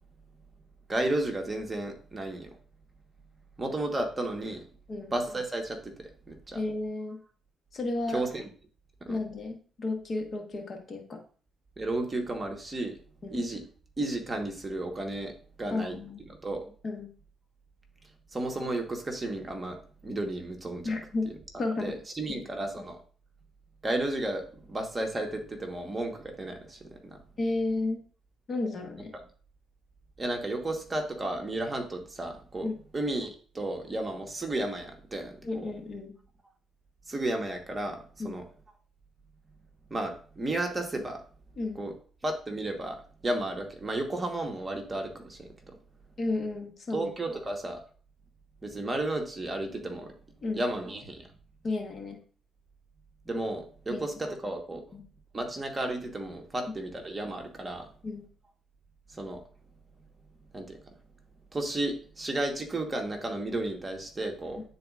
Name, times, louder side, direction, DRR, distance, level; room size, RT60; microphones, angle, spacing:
voice 1, 0.9-2.5 3.6-4.6 5.1-6.6 8.1-8.5 9.1-9.2 11.8-13.0 13.3-13.6 14.0-15.3 15.6-16.0 16.4-16.7 18.3-19.8 20.0-20.9 21.3-21.4 21.8-23.0 23.8-27.2 30.2-35.7 37.1-38.4 39.9-41.2 41.7-41.9 42.2-45.5 46.9-47.8 48.6-50.1 50.5-51.2 53.2-54.8 55.3-57.9 59.1-59.4 60.5-60.8 61.5-64.6, right 1 dB, 25° right, 3 dB, 1.2 m, -33 dB
voice 2, 6.5-7.2 7.7-8.2 9.1-11.2 13.2-13.4 15.7-16.2 16.8-17.1 20.8-21.3 21.6-21.9 22.3-22.4 27.4-28.0 28.5-29.1 32.6-32.8 35.4-36.1 38.2-38.4 41.6-41.8 46.2-47.1 50.4-50.6 51.6-52.2 53.9-54.0 54.9-55.0 58.0-58.2, left 2 dB, 45° left, 3 dB, 1.2 m, -32 dB
9.6 x 4.0 x 2.4 m, 0.42 s
cardioid pair, 90°, 0 cm